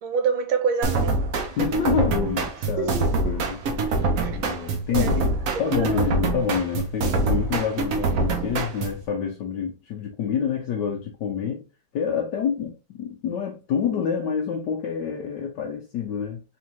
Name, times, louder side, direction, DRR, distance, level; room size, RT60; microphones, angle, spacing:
voice 1, 0.0-1.1 2.8-2.9 4.2-4.4 4.9-5.2 5.6-6.0, right 6 dB, 85° right, 1.6 m, -26 dB
sound 1, 0.8-9.0, right 3 dB, 60° right, 1.0 m, -25 dB
voice 2, 1.5-3.0 3.2-11.7 11.9-16.4, left 7 dB, 70° left, 1.2 m, -28 dB
3.5 x 3.4 x 2.9 m
omnidirectional pair, 2.1 m